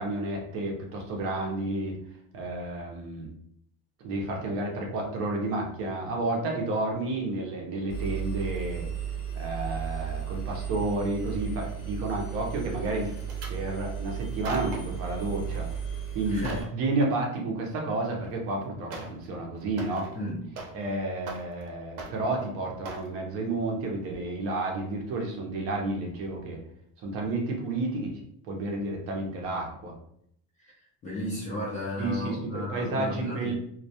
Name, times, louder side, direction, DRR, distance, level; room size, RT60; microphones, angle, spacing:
voice 1, 0.0-2.0 2.3-3.3 4.0-8.9 9.4-13.1 13.5-15.7 16.1-20.1 20.7-26.6 27.0-28.1 28.4-29.9 32.0-33.5, right 2 dB, 40° right, 0 dB, 0.5 m, -31 dB
Engine, 7.9-16.6, right 8 dB, 80° left, 0.9 m, -34 dB
sound 1, 13.0-13.6 14.2-15.0 15.5-15.8 16.2-16.8 18.1-18.2 18.9-19.3 19.6-20.9 21.2-21.7 22.0-22.5 22.8-23.1 23.6-23.8 24.1-24.2, right 3 dB, 85° right, 0.7 m, -41 dB
voice 2, 16.3-16.7 20.1-20.5 30.6-30.7 31.0-33.5, left 1 dB, 20° left, -5 dB, 0.4 m, -34 dB
2.2 x 2.1 x 2.7 m, 0.68 s
cardioid pair, 165°, 36 cm